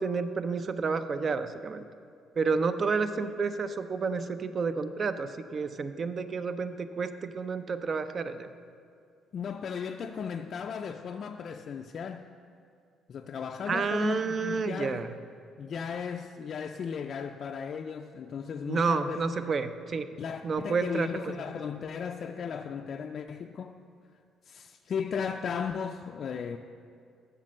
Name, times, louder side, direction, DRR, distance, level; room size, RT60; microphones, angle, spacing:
voice 1, 0.0-1.8 2.4-8.5 13.7-15.1 18.7-20.1 20.4-21.2, right 4 dB, 40° right, 11 dB, 0.5 m, -30 dB
voice 2, 9.3-12.3 13.1-15.1 15.6-19.2 20.2-23.8 24.5-26.6, left 6 dB, 55° left, 4 dB, 0.3 m, -36 dB
7.4 x 6.7 x 6.4 m, 2.4 s
cardioid pair, 90°, 0 cm